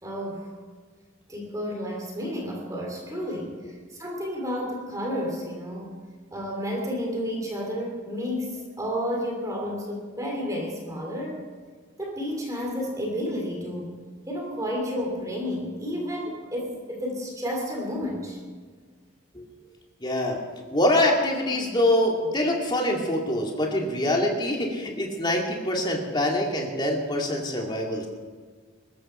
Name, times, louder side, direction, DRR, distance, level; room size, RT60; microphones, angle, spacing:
voice 1, 0.0-0.6 1.3-6.0 6.3-11.4 12.0-14.0 14.3-18.4 19.6-19.7, equal, 15° right, 0 dB, 2.9 m, -31 dB
voice 2, 20.0-20.4 20.7-28.1, left 1 dB, 25° left, 0 dB, 2.5 m, -24 dB
21.5 x 13.5 x 4.4 m, 1.5 s
head